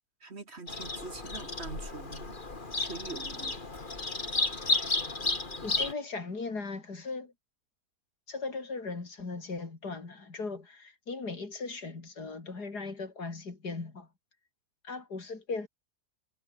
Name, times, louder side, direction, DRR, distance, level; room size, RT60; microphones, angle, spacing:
voice 1, 0.2-2.4 2.8-3.6, right 3 dB, 40° right, 2.4 m, -44 dB
Bird vocalization bird call bird song, 0.7-5.9, left 3 dB, 30° left, 2.5 m, -33 dB
voice 2, 5.6-7.3 8.3-14.1 14.8-15.7, left 4 dB, 90° left, 4.2 m, -38 dB
omnidirectional pair, 1.7 m